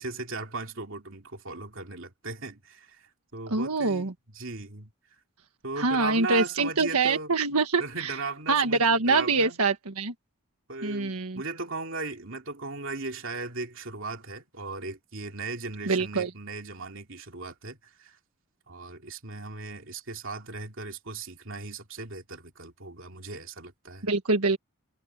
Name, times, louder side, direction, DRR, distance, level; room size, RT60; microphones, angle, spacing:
voice 1, 0.0-4.9 5.6-7.3 7.8-9.6 10.7-18.2 18.7-24.1, right 3 dB, 60° right, 2.9 m, -37 dB
voice 2, 3.5-4.1 5.8-8.1 8.5-10.1 10.8-11.4 15.9-16.3 24.0-24.6, right 3 dB, 90° right, 1.6 m, -25 dB
head